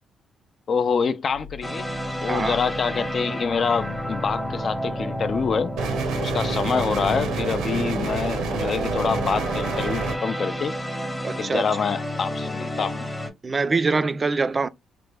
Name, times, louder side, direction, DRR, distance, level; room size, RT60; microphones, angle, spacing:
voice 1, 0.7-1.9 2.2-5.7 6.2-10.8 11.4-13.1, left 5 dB, 45° left, 0.4 m, -26 dB
sound 1, 1.3-6.3, left 6 dB, 90° left, 0.6 m, -43 dB
sound 2, 1.6-13.3, equal, 10° left, 0.8 m, -31 dB
sound 3, 5.8-10.2, right 4 dB, 90° right, 0.7 m, -28 dB
voice 2, 11.2-11.6 13.4-14.7, right 4 dB, 30° right, 0.3 m, -24 dB
3.2 x 2.1 x 3.2 m
cardioid pair, 90°, 0 cm